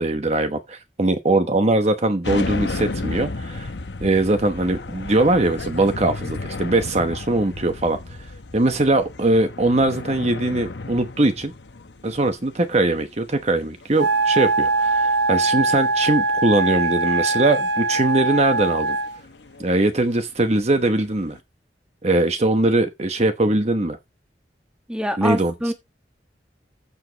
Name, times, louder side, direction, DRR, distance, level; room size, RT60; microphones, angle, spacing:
voice 1, 0.0-3.7 4.0-8.0 8.5-11.5 12.0-19.0 19.6-21.4 22.0-24.0 25.2-25.5, right 2 dB, 40° right, 1.1 m, -21 dB
sound 1, 2.2-21.4, left 3 dB, 80° left, 0.9 m, -34 dB
Wind instrument woodwind instrument, 14.0-19.2, right 3 dB, 80° right, 1.0 m, -21 dB
voice 2, 24.9-25.7, equal, 5° right, 1.3 m, -25 dB
14.5 x 5.2 x 4.0 m
head